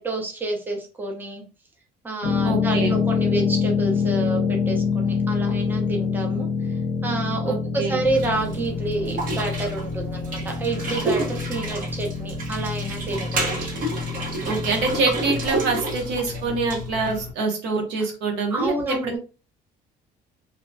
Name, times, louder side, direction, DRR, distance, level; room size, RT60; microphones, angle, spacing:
voice 1, 0.0-1.4 2.0-6.5 7.0-13.6 18.5-19.2, right 2 dB, 10° right, 1 dB, 0.6 m, -29 dB
sound 1, 2.2-15.4, left 5 dB, 55° left, 0.6 m, -26 dB
voice 2, 2.4-3.0 7.5-8.0 14.4-19.2, right 4 dB, 90° right, 2 dB, 0.8 m, -25 dB
sound 2, 8.0-17.3, right 1 dB, 50° right, 0.9 m, -30 dB
2.8 x 2.1 x 2.6 m, 0.33 s
cardioid pair, 150°, 17 cm